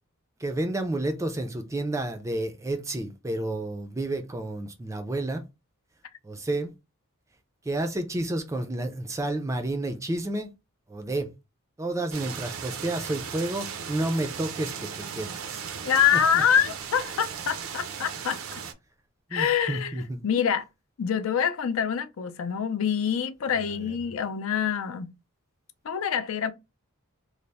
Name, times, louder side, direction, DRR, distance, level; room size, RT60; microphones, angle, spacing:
voice 1, 0.4-5.4 6.2-6.7 7.7-10.5 10.9-11.3 11.8-15.6 16.3-16.4 19.3-20.2 23.6-24.0, right 1 dB, 15° right, 0.4 m, -30 dB
sound 1, 12.1-18.7, right 7 dB, 70° right, 0.5 m, -37 dB
voice 2, 15.8-18.4 19.3-20.6 21.0-25.1 25.8-26.5, left 8 dB, 70° left, 0.4 m, -25 dB
3.2 x 2.0 x 4.0 m
head